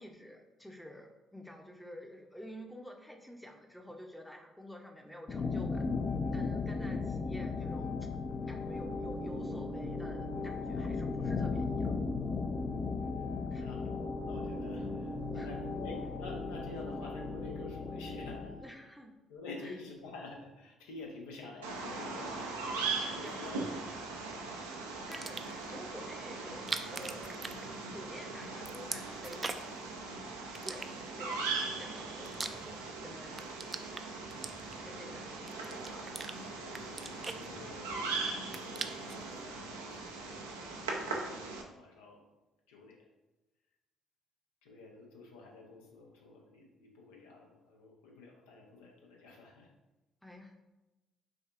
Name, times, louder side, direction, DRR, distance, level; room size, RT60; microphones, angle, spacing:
voice 1, 0.0-5.9 6.3-8.0 8.5-11.9 13.5-13.7 15.3-15.5 18.6-19.1 19.6-19.7 23.2-23.7 25.1-29.8 30.6-30.9 31.2-33.9 34.8-36.0 50.2-50.6, equal, 5° left, 3 dB, 0.7 m, -50 dB
sound 1, 5.3-18.6, left 3 dB, 40° left, 0.4 m, -36 dB
voice 2, 13.5-18.6 19.3-23.6 24.4-24.6 36.6-41.2 41.8-42.3 42.7-43.0 44.6-49.7, left 3 dB, 80° left, -1 dB, 0.7 m, -49 dB
Bird vocalization bird call bird song, 21.6-41.6, right 3 dB, 90° right, 0.4 m, -40 dB
sound 2, 25.0-25.7 26.5-28.2 28.4-29.8 30.5-31.4 31.9-33.0 33.3-35.0 35.5-36.4 36.7-38.0 38.3-39.2, right 3 dB, 30° right, 0.3 m, -41 dB
6.1 x 2.3 x 2.5 m, 1.0 s
hypercardioid pair, 50°, 0 cm